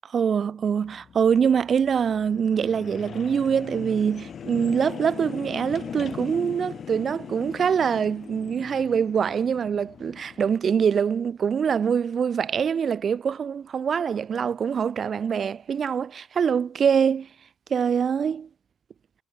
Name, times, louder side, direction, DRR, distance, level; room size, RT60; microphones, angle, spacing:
voice 1, 0.1-17.3 17.7-18.5, right 7 dB, 50° right, 0.4 m, -24 dB
sound 1, 0.8-10.6, left 7 dB, 55° left, 1.5 m, -40 dB
cardioid pair, 90°, 0 cm